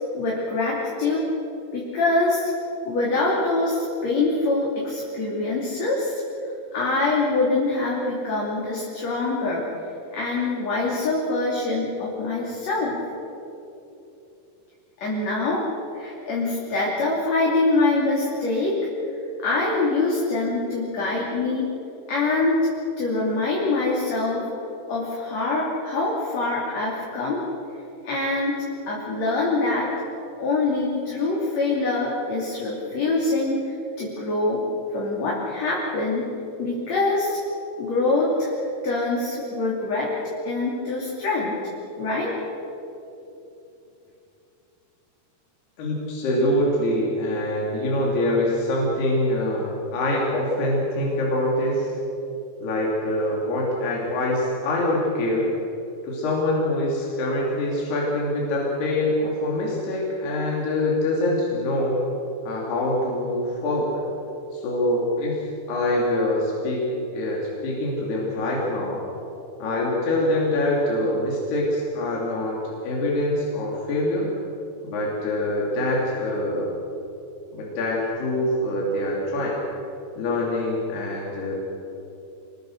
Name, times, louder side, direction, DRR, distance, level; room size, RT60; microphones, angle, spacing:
voice 1, 0.1-1.2 1.7-2.5 2.8-6.2 6.7-9.6 10.1-13.0 15.0-15.6 15.9-18.8 19.4-21.7 22.1-22.6 23.0-24.5 24.9-27.4 28.0-29.9 30.4-34.6 34.9-36.3 36.6-37.4 37.8-38.5 38.8-40.1 40.4-41.5 42.0-42.3, left 2 dB, 45° left, -4 dB, 3.7 m, -24 dB
voice 2, 45.8-51.9 52.6-55.5 56.0-62.0 62.4-64.1 64.5-65.4 65.7-66.9 67.1-69.0 69.6-72.6 72.8-74.3 74.8-76.7 77.5-79.6 80.2-81.6, left 1 dB, 70° left, -3 dB, 5.0 m, -24 dB
27.0 x 21.5 x 6.6 m, 3.0 s
omnidirectional pair, 4.8 m